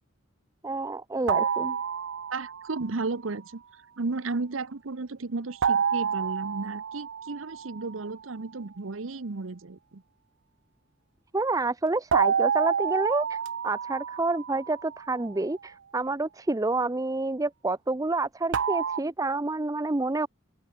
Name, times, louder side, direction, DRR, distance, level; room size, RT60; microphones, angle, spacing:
voice 1, 0.6-1.8 11.3-13.4 13.6-20.3, right 3 dB, 15° right, 0.5 m, -28 dB
sound 1, 1.3-2.8 5.6-8.1 12.1-15.3 18.5-19.0, right 7 dB, 65° right, 0.4 m, -28 dB
voice 2, 2.3-3.6 4.0-10.0, right 3 dB, 90° right, 0.9 m, -34 dB
open air
head